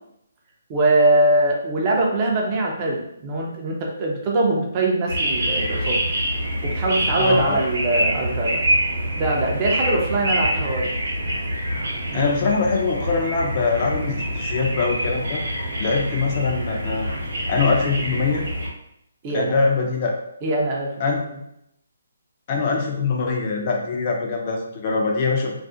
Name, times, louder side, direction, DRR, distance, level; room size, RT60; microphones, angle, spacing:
voice 1, 0.7-6.0 6.6-8.6 9.2-10.9 12.1-12.3 19.2-19.6 20.4-20.9 21.3-21.4, right 2 dB, 25° right, -1 dB, 0.5 m, -22 dB
sound 1, 5.1-18.7, right 1 dB, 65° right, 0.8 m, -26 dB
voice 2, 7.2-7.6 12.1-15.4 15.8-17.1 17.5-18.5 19.3-20.1 21.0-21.2 22.5-25.5, left 4 dB, 35° left, 0 dB, 0.4 m, -23 dB
2.4 x 2.0 x 2.5 m, 0.78 s
hypercardioid pair, 160°, 0 cm